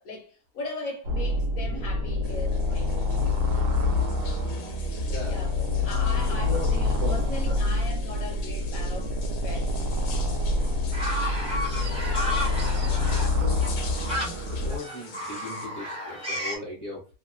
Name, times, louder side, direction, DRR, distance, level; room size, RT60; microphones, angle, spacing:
voice 1, 0.0-3.5 4.2-4.7 5.3-9.8, left 2 dB, 65° left, 0.9 m, -39 dB
sound 1, 1.0-14.8, left 3 dB, 75° right, 1.1 m, -26 dB
sound 2, 2.2-15.7, left 6 dB, 85° left, 1.2 m, -45 dB
voice 2, 5.1-5.4 6.1-7.2 11.4-11.6 12.6-12.8 13.4-13.7 14.1-17.0, equal, 50° right, 1.2 m, -38 dB
sound 3, 10.9-16.6, left 1 dB, 5° right, 0.6 m, -33 dB
3.0 x 2.1 x 2.4 m
omnidirectional pair, 1.8 m